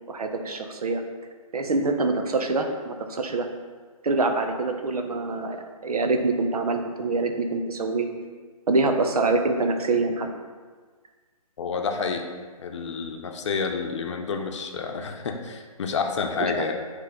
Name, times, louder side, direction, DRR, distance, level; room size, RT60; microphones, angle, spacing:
voice 1, 0.1-1.0 1.5-3.5 4.0-5.6 5.8-8.1 8.7-10.3 16.4-16.7, right 3 dB, 80° right, 5 dB, 0.8 m, -25 dB
voice 2, 11.6-12.3 12.6-16.7, left 5 dB, 50° left, 4 dB, 0.7 m, -29 dB
7.6 x 3.2 x 3.8 m, 1.5 s
hypercardioid pair, 155°, 19 cm